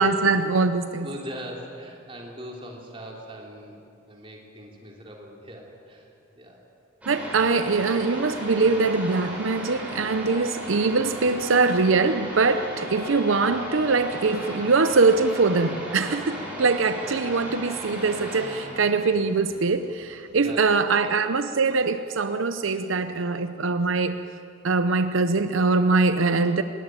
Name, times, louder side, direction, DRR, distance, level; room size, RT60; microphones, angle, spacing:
voice 1, 0.0-1.1 7.1-24.2 24.6-26.6, right 4 dB, 80° right, 10 dB, 0.7 m, -22 dB
voice 2, 1.0-6.1 6.4-6.6 20.4-21.2 22.7-23.3, equal, 25° right, -1 dB, 3.2 m, -41 dB
sound 1, 7.0-20.4, equal, 5° right, 6.0 m, -36 dB
20.0 x 18.5 x 9.1 m, 2.6 s
head